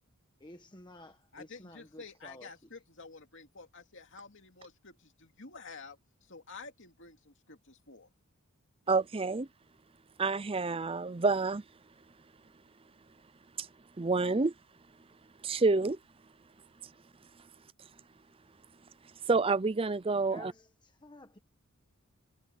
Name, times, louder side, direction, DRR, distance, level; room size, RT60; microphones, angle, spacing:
voice 1, 0.4-2.5 20.1-21.4, left 1 dB, 20° left, 1.4 m, -52 dB
voice 2, 1.3-6.0 6.3-8.1, left 4 dB, 55° left, 2.7 m, -50 dB
voice 3, 8.9-9.5 10.2-11.6 13.6-13.7 14.0-14.5 15.4-16.0 19.3-20.5, right 3 dB, 25° right, 0.5 m, -28 dB
head